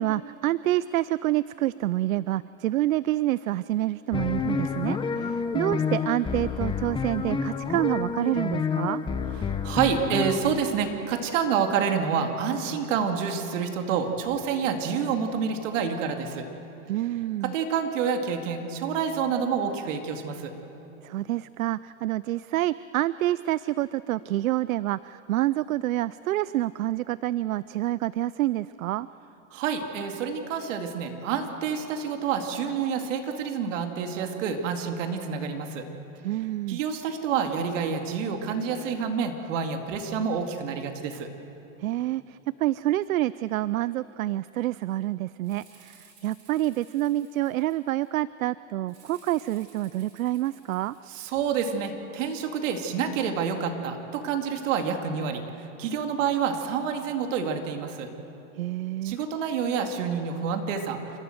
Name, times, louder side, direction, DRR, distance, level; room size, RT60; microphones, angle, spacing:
voice 1, 0.0-9.0 16.9-17.5 21.0-29.1 36.2-36.8 41.8-50.9 58.5-59.2, right 15 dB, 90° right, 18 dB, 0.5 m, -27 dB
sound 1, 4.1-10.6, left 5 dB, 10° left, 1.0 m, -29 dB
voice 2, 9.6-16.5 17.5-20.5 29.5-35.8 36.7-41.3 51.1-58.1 59.0-61.0, right 6 dB, 65° right, 4 dB, 2.4 m, -28 dB
Rattle (instrument), 45.4-48.1 48.9-51.1, right 5 dB, 40° right, 6.1 m, -57 dB
30.0 x 13.5 x 7.9 m, 3.0 s
hypercardioid pair, 125°, 40 cm